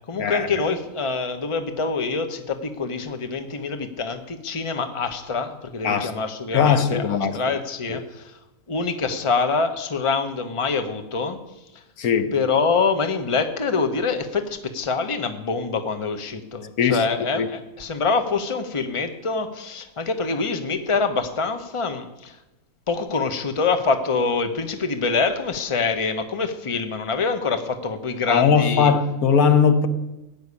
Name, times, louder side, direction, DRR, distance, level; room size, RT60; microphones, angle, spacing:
voice 1, 0.1-8.4 8.7-11.4 12.3-22.4 22.9-28.9, left 4 dB, 25° left, 1.0 m, -25 dB
voice 2, 6.5-7.4 7.9-8.0 12.0-12.3 16.8-17.0 17.3-17.5 28.3-29.9, left 6 dB, 80° left, 1.5 m, -19 dB
16.5 x 7.0 x 9.7 m
omnidirectional pair, 1.5 m